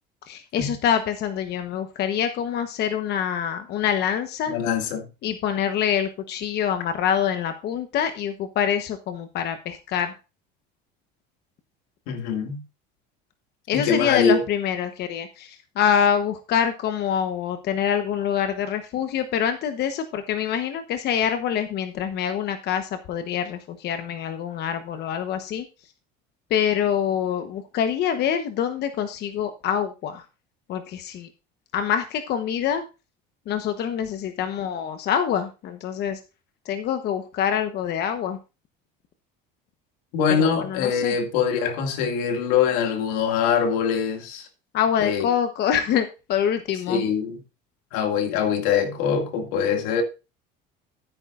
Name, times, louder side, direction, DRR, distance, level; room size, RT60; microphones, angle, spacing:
voice 1, 0.3-4.5 5.2-10.2 13.7-25.6 26.5-30.2 30.7-31.3 31.7-32.8 33.5-36.2 36.6-38.4 40.4-41.2 44.7-47.0, left 8 dB, 50° left, 1.1 m, -25 dB
voice 2, 4.5-5.1 12.1-12.6 13.7-14.4 40.1-44.5 45.0-45.3 46.9-47.4 47.9-50.0, left 7 dB, 80° left, 2.2 m, -23 dB
14.5 x 8.9 x 2.5 m
cardioid pair, 120°, 21 cm